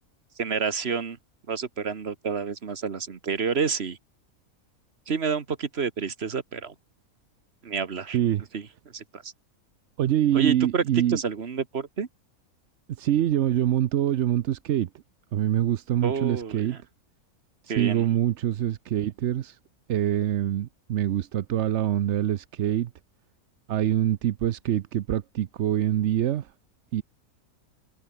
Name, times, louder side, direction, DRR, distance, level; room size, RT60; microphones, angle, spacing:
voice 1, 0.4-1.2 1.5-4.0 5.1-6.7 7.6-8.2 8.5-8.7 8.9-9.3 10.3-10.8 11.1-12.1 16.0-16.6 17.7-18.1, right 5 dB, 45° right, 1.7 m, -29 dB
voice 2, 8.1-8.4 10.0-11.2 13.0-14.9 15.3-16.8 17.8-19.6 19.9-22.9 23.7-26.5 26.9-27.0, right 11 dB, 60° right, 0.9 m, -25 dB
omnidirectional pair, 1.5 m